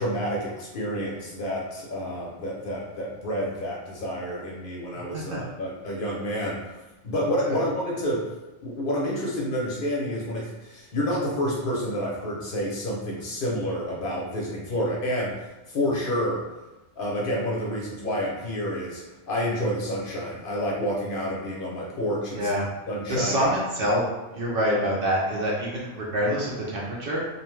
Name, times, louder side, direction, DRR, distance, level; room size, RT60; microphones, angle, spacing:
voice 1, 0.0-6.7 7.0-8.2 8.6-15.3 15.7-16.4 17.0-19.0 19.3-22.5 22.9-23.5, equal, 55° left, -4 dB, 0.7 m, -29 dB
voice 2, 22.3-22.6 23.1-24.0 24.3-27.2, equal, 60° right, -4 dB, 0.7 m, -26 dB
2.7 x 2.1 x 3.0 m, 1.0 s
omnidirectional pair, 1.2 m